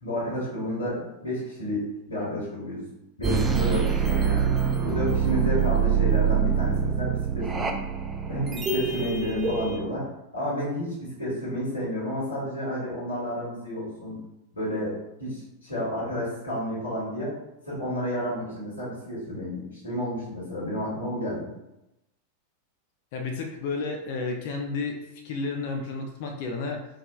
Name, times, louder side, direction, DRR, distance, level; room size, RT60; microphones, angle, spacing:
voice 1, 0.0-2.9 3.2-4.5 4.8-7.8 8.3-14.2 14.5-17.3 17.6-21.5, equal, 85° left, -8 dB, 1.5 m, -31 dB
sound 1, 3.2-9.8, right 7 dB, 20° right, 0.4 m, -25 dB
voice 2, 23.1-26.9, left 3 dB, 50° left, 3 dB, 0.5 m, -32 dB
4.7 x 2.3 x 2.3 m, 0.89 s
figure-of-eight pair, 90°, 0 cm